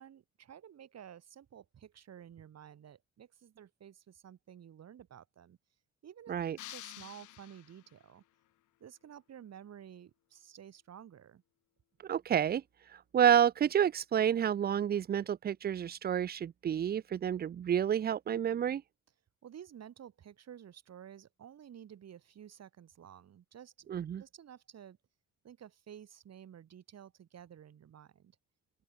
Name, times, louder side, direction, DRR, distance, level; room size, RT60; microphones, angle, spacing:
voice 1, 0.0-5.6 6.0-8.2 8.8-11.4 19.4-23.9 24.2-25.0 25.4-28.4, right 9 dB, 60° right, 2.9 m, -52 dB
sound 1, 6.6-8.1, left 17 dB, 80° left, 0.7 m, -49 dB
voice 2, 12.0-12.6 12.9-18.8 23.9-24.2, right 9 dB, 30° right, 0.4 m, -29 dB
open air
cardioid pair, 90°, 30 cm